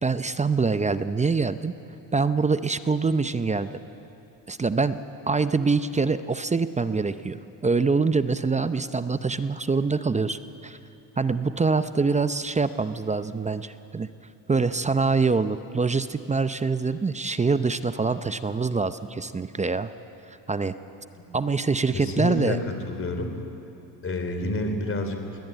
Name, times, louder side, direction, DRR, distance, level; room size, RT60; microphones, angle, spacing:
voice 1, 0.0-1.7 2.1-3.8 4.5-5.0 5.3-10.8 11.2-14.1 14.5-19.9 20.5-20.7 21.3-22.6, right 4 dB, 15° right, 11 dB, 0.7 m, -25 dB
voice 2, 21.9-23.3 24.0-25.4, left 2 dB, 30° left, 6 dB, 3.6 m, -29 dB
21.0 x 19.0 x 9.1 m, 2.8 s
cardioid pair, 100°, 42 cm